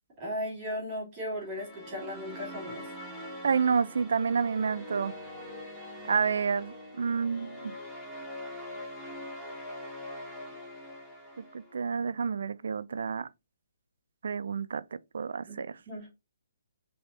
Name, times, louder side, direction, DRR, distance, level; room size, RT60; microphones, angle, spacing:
voice 1, 0.2-2.8 15.5-15.6 15.9-16.1, equal, 15° right, 3.0 m, -36 dB
sound 1, 1.4-11.8, left 1 dB, ahead, 0.8 m, -43 dB
voice 2, 3.4-5.1 6.1-7.7 11.4-13.3 14.2-14.8 15.1-15.7, right 6 dB, 60° right, 0.4 m, -29 dB
5.4 x 3.4 x 2.7 m
hypercardioid pair, 170°, 0 cm